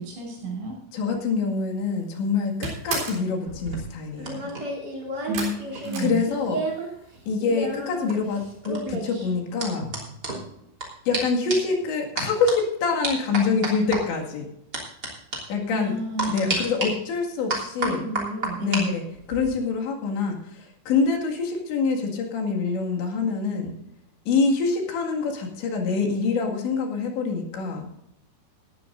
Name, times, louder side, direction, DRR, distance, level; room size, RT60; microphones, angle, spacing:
voice 1, 0.0-0.8 5.3-5.5 5.8-6.3 15.7-16.7 17.8-19.0, right 1 dB, 80° right, 0 dB, 8.4 m, -31 dB
voice 2, 0.9-4.5 6.0-6.6 7.3-9.9 11.1-14.4 15.5-15.9 16.3-18.1 18.6-19.0 19.3-23.7 24.3-27.9, left 4 dB, 70° left, 1 dB, 4.2 m, -25 dB
sound 1, 1.6-2.0 2.3-3.3 5.3-6.8 7.1-7.7 8.0-8.1 8.5-8.6, right 3 dB, 55° right, 5.4 m, -33 dB
sound 2, 3.5-6.9 7.1-10.9 11.1-11.2 11.5-11.8 12.2-12.5 13.0-14.0 14.7-15.1 15.3-15.4 16.2-16.9 17.5-18.8 19.1-19.5, right 2 dB, 25° right, 2.9 m, -31 dB
19.0 x 13.0 x 2.6 m, 0.77 s
omnidirectional pair, 5.5 m